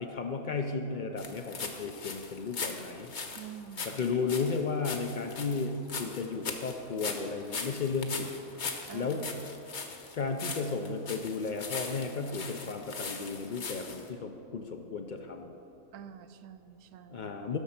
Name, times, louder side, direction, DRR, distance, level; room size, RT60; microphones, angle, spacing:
voice 1, 0.0-3.1 3.9-8.3 8.9-9.2 10.1-15.6 17.1-17.6, left 4 dB, 65° left, 5 dB, 0.4 m, -34 dB
sound 1, 1.2-14.1, left 4 dB, 45° left, 0.8 m, -40 dB
voice 2, 3.4-4.2 8.9-9.5 15.9-17.4, right 9 dB, 70° right, 11 dB, 0.9 m, -47 dB
11.5 x 6.4 x 5.8 m, 2.8 s
omnidirectional pair, 1.5 m